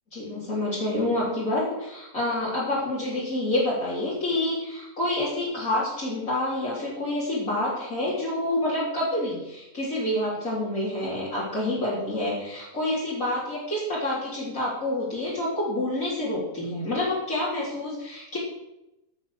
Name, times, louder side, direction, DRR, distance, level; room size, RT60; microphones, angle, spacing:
voice 1, 0.1-18.4, left 1 dB, 60° left, -8 dB, 3.8 m, -28 dB
13.5 x 6.6 x 6.5 m, 0.92 s
omnidirectional pair, 1.6 m